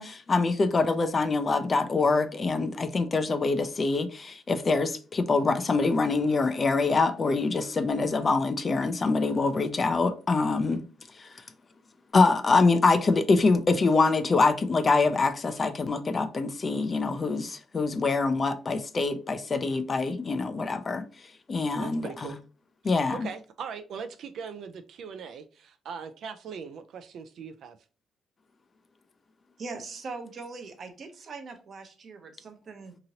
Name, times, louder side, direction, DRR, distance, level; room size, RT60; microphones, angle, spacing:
voice 1, 0.0-10.8 11.2-11.3 12.1-21.0 21.5-22.3 22.8-23.3, left 3 dB, 35° left, 0.4 m, -25 dB
voice 2, 21.7-22.4 22.8-27.8, right 6 dB, 70° right, 0.3 m, -40 dB
voice 3, 29.6-33.0, right 4 dB, 50° right, 0.7 m, -41 dB
2.9 x 2.8 x 2.7 m
cardioid pair, 90°, 0 cm